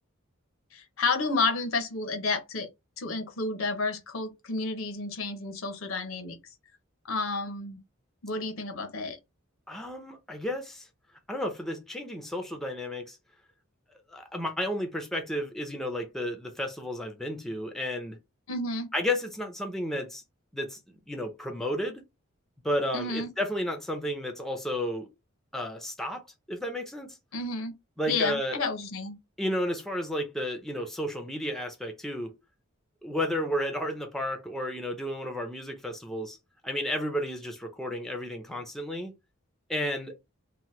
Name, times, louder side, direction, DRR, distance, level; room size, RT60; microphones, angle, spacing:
voice 1, 0.7-2.7 3.0-6.4 7.0-7.8 8.2-9.2 18.5-18.9 22.9-23.3 27.3-27.7 28.1-29.2, left 3 dB, 70° left, 0.7 m, -31 dB
voice 2, 9.7-10.9 11.3-13.2 14.1-18.2 18.9-20.2 20.5-22.0 22.6-25.1 25.5-27.1 28.0-28.6 29.4-32.3 33.0-36.4 36.6-39.1 39.7-40.2, left 1 dB, ahead, 0.5 m, -32 dB
2.8 x 2.1 x 3.1 m
head